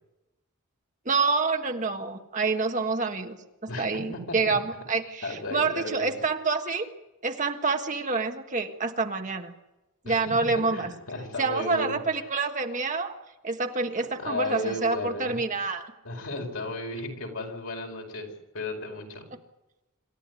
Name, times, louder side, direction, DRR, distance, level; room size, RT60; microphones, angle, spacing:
voice 1, 1.0-6.9 7.2-9.5 10.0-10.9 11.4-13.1 13.4-15.9, right 4 dB, 35° right, 5 dB, 1.5 m, -27 dB
voice 2, 5.2-6.2 10.0-12.0 14.0-15.4 16.0-18.3 18.5-19.3, left 2 dB, 80° left, 2 dB, 5.0 m, -34 dB
26.5 x 13.0 x 9.6 m, 1.0 s
head